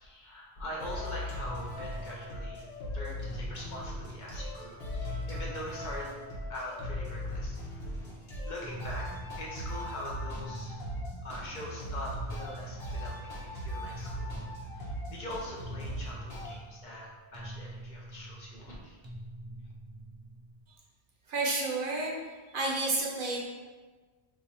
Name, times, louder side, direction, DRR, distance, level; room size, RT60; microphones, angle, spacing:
voice 1, 0.0-2.6 2.9-6.2 6.5-7.9 8.2-9.1 9.4-10.8 11.2-19.0, left 1 dB, 55° left, -3 dB, 0.7 m, -43 dB
sound 1, 0.8-16.6, left 1 dB, 75° left, 1.1 m, -39 dB
sound 2, 1.4-20.7, right 1 dB, 40° right, 0.4 m, -46 dB
voice 2, 21.3-22.1 22.5-23.4, right 2 dB, 60° right, -2 dB, 0.8 m, -30 dB
2.8 x 2.5 x 4.1 m, 1.4 s
omnidirectional pair, 1.1 m